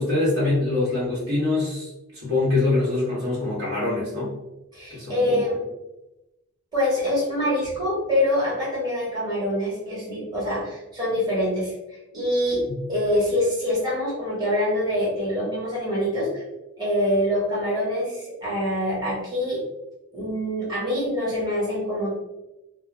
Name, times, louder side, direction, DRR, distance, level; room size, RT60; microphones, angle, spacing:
voice 1, 0.0-4.3 4.9-5.5 12.7-12.8, left 2 dB, 70° right, -6 dB, 1.0 m, -24 dB
voice 2, 4.7-5.6 6.7-12.6 12.9-16.4 16.8-19.6 20.1-22.1, left 1 dB, 20° right, -7 dB, 1.1 m, -25 dB
2.2 x 2.0 x 3.1 m, 0.95 s
head